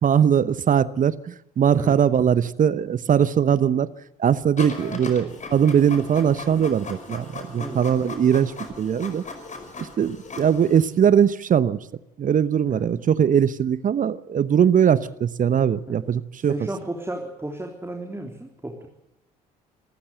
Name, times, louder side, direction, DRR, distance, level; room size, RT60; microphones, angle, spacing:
voice 1, 0.0-3.9 4.2-9.2 9.8-11.8 12.2-16.5, right 8 dB, 40° right, 18 dB, 0.9 m, -20 dB
Printer, 4.6-10.8, left 3 dB, 35° left, 5.3 m, -38 dB
voice 2, 16.4-18.9, right 1 dB, 10° right, 2 dB, 3.6 m, -33 dB
26.5 x 14.5 x 7.9 m, 0.81 s
hypercardioid pair, 55°, 21 cm